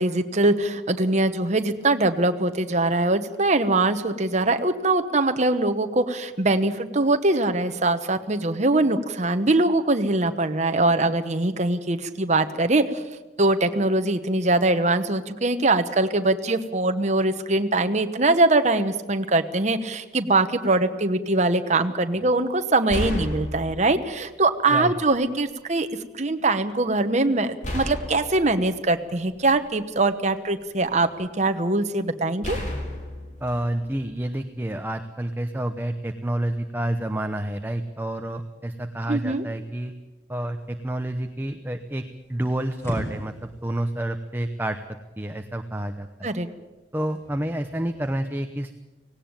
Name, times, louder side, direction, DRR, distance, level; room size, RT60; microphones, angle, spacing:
voice 1, 0.0-13.0 13.4-25.9 26.2-32.6 39.1-39.4 46.2-46.5, right 2 dB, 40° right, 8 dB, 1.1 m, -22 dB
sound 1, 22.1-22.3 22.9-24.2 25.1-25.2 27.6-29.8 30.4-31.2 32.4-34.5, left 1 dB, 45° left, 4.3 m, -33 dB
voice 2, 33.4-39.9 40.3-44.8 45.2-46.3 46.9-48.7, right 1 dB, 10° right, 6 dB, 0.8 m, -29 dB
sound 2, 40.6-48.1, equal, 15° left, 4.8 m, -42 dB
18.0 x 17.5 x 8.9 m, 1.1 s
head